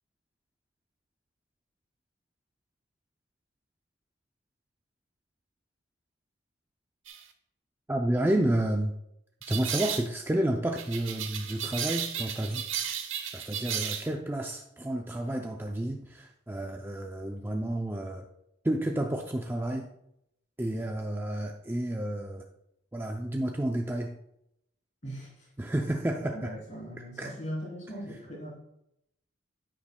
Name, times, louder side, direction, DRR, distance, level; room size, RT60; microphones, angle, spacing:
sound 1, 7.1-7.2 9.4-10.1 10.8-14.1, right 8 dB, 75° right, 0.9 m, -34 dB
voice 1, 7.9-9.0 9.5-12.7 13.3-18.3 18.6-19.9 20.6-22.5 22.9-24.2 25.6-26.5 27.2-27.3, right 1 dB, 10° right, 2 dB, 0.4 m, -30 dB
voice 2, 25.0-25.5 26.3-28.6, equal, 35° left, -5 dB, 3.3 m, -39 dB
9.9 x 8.6 x 2.2 m, 0.79 s
head